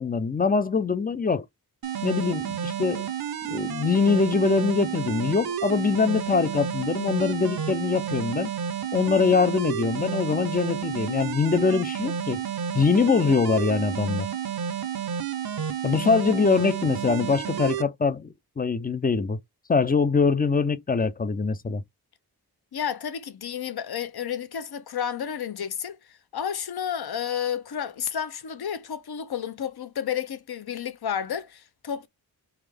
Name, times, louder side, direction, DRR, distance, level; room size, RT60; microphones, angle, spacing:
voice 1, 0.0-1.5 2.0-3.1 3.5-8.5 8.9-12.4 12.7-14.3 15.8-19.4 19.7-21.8, left 5 dB, 25° left, 0.3 m, -23 dB
sound 1, 1.8-17.8, right 8 dB, 65° right, 0.6 m, -31 dB
voice 2, 22.7-26.0 26.3-32.1, left 8 dB, 70° left, 0.7 m, -31 dB
3.5 x 3.4 x 3.4 m
wide cardioid pair, 110°, 40 cm